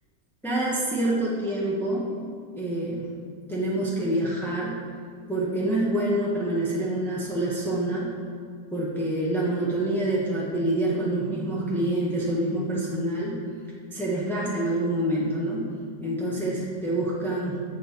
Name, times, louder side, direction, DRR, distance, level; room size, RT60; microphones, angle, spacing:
voice 1, 0.4-2.1 2.5-3.1 3.5-4.8 5.3-8.1 8.7-13.4 13.9-15.7 16.0-17.6, right 1 dB, 5° left, -6 dB, 0.4 m, -26 dB
7.7 x 3.8 x 5.6 m, 2.4 s
omnidirectional pair, 2.0 m